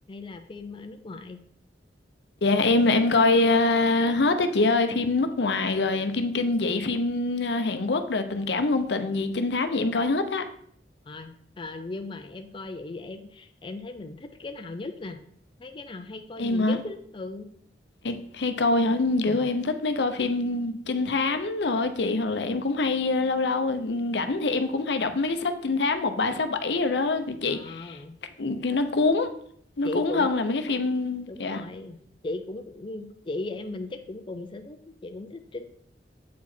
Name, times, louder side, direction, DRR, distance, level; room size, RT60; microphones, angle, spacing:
voice 1, 0.1-1.4 11.1-15.2 15.6-17.5 19.3-19.5 27.5-28.2 29.8-30.3 31.3-32.0 32.2-35.6, left 2 dB, 30° left, 0.5 m, -37 dB
voice 2, 2.4-10.4 16.4-16.8 18.0-28.0 28.4-29.3 29.8-31.6, left 3 dB, 70° left, 0.7 m, -25 dB
8.2 x 4.8 x 4.4 m
head